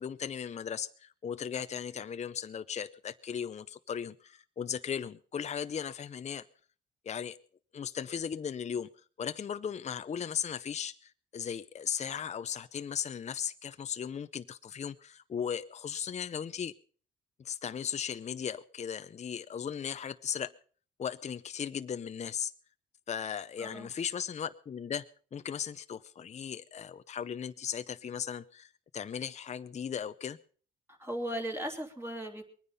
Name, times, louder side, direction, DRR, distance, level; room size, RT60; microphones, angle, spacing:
voice 1, 0.0-6.4 7.0-7.4 7.7-8.9 9.2-16.7 17.4-20.5 21.0-22.5 23.1-30.4, left 8 dB, 35° left, 0.6 m, -37 dB
voice 2, 23.6-23.9 30.9-32.5, equal, 10° right, 3.0 m, -37 dB
21.5 x 9.8 x 5.5 m
cardioid pair, 90°, 20 cm